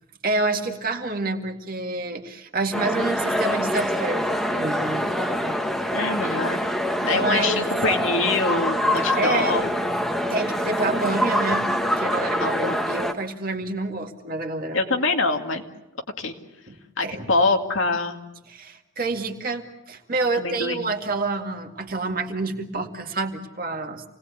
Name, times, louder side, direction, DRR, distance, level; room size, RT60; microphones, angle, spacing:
voice 1, 0.2-5.6 5.8-5.9 7.1-7.7 9.2-9.7 10.3-11.7 12.0-14.8 16.7-16.8 17.0-17.3 18.5-24.0, right 2 dB, 45° right, 4 dB, 2.1 m, -28 dB
sound 1, 2.7-13.1, equal, ahead, 1.3 m, -25 dB
voice 2, 5.9-6.6 7.0-9.7 12.4-12.8 14.7-15.6 16.2-16.3 17.0-18.2 20.4-20.8, left 3 dB, 75° left, 4 dB, 2.3 m, -24 dB
28.0 x 19.0 x 8.3 m, 0.93 s
head